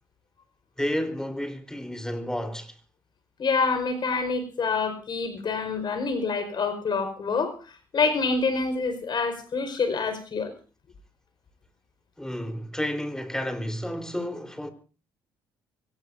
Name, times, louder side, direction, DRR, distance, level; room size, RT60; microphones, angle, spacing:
voice 1, 0.8-2.8 12.2-14.7, equal, 5° left, 3.9 m, -31 dB
voice 2, 3.4-7.5 7.9-10.5, left 4 dB, 50° left, 5.0 m, -26 dB
24.5 x 18.0 x 2.7 m
hypercardioid pair, 50°, 10 cm